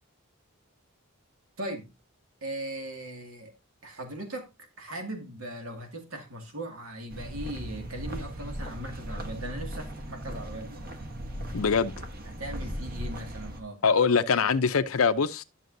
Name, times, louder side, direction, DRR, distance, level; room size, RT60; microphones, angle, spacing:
voice 1, 1.6-1.9 2.4-3.5 3.8-4.5 4.8-10.9 12.2-13.8, right 1 dB, 85° right, 2.1 m, -39 dB
sound 1, 7.1-13.6, equal, 45° right, 1.2 m, -38 dB
voice 2, 11.5-11.9 13.8-15.4, left 5 dB, 80° left, 0.6 m, -23 dB
11.0 x 6.8 x 2.6 m
head